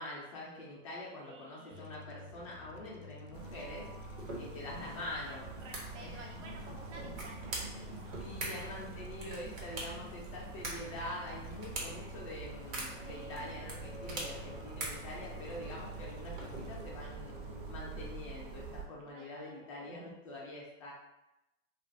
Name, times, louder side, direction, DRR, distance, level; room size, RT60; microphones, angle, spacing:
voice 1, 0.0-3.9 4.4-5.4 6.0-6.2 8.2-17.4 17.7-20.9, left 1 dB, 30° left, -4 dB, 0.3 m, -45 dB
voice 2, 1.2-1.9 5.2-8.3 12.8-13.5 19.0-19.9, right 2 dB, 65° right, -1 dB, 0.9 m, -54 dB
sound 1, 1.7-18.1, left 3 dB, 85° left, 0.5 m, -51 dB
sound 2, 3.3-18.8, right 4 dB, 40° right, 0.4 m, -46 dB
sound 3, 4.2-17.0, right 2 dB, 85° right, 1.1 m, -46 dB
2.4 x 2.3 x 2.5 m, 0.91 s
hypercardioid pair, 145°, 39 cm